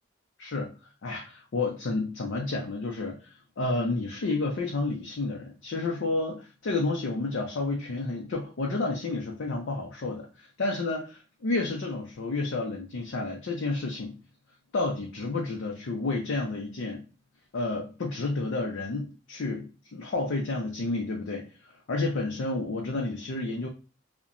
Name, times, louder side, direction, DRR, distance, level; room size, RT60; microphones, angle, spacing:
voice 1, 0.4-0.7 1.0-14.2 14.7-17.0 17.5-23.7, left 3 dB, 70° left, 0 dB, 0.5 m, -30 dB
2.8 x 2.1 x 2.4 m, 0.33 s
head